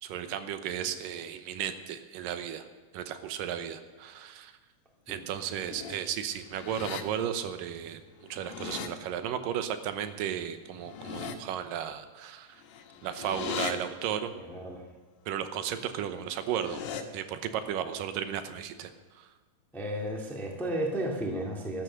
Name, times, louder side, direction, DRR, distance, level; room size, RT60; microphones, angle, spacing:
voice 1, 0.0-2.7 2.9-4.5 5.1-8.0 8.3-12.6 13.0-14.3 15.3-16.8 17.1-19.3, right 9 dB, 75° right, 10 dB, 2.1 m, -34 dB
sound 1, 5.4-6.0 6.4-7.0 8.2-8.9 10.7-11.4 12.6-13.7 16.3-17.0, left 9 dB, 75° left, 3.2 m, -39 dB
voice 2, 13.2-13.8 14.3-14.9 19.7-21.8, right 1 dB, ahead, 0 dB, 1.1 m, -34 dB
13.5 x 13.5 x 6.4 m, 1.4 s
omnidirectional pair, 4.8 m